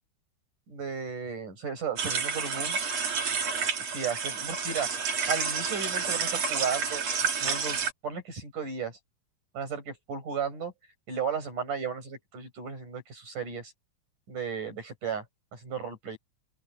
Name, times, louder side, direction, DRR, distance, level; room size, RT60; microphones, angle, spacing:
voice 1, 0.7-2.8 3.8-4.9 5.3-7.0 7.4-9.0 9.5-10.7 11.1-13.7 14.3-15.2 15.5-16.2, right 6 dB, 80° right, 9.6 m, -34 dB
sound 1, 2.0-7.9, right 6 dB, 55° right, 3.8 m, -30 dB
open air
omnidirectional pair, 3.6 m